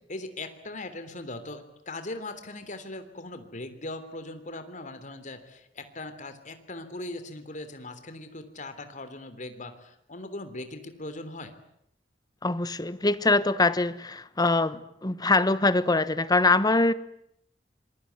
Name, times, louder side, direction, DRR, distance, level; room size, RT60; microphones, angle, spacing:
voice 1, 0.1-11.5, left 2 dB, 45° left, 9 dB, 3.3 m, -39 dB
voice 2, 12.4-16.9, left 2 dB, 20° left, 15 dB, 1.1 m, -23 dB
26.5 x 22.5 x 9.5 m, 0.74 s
head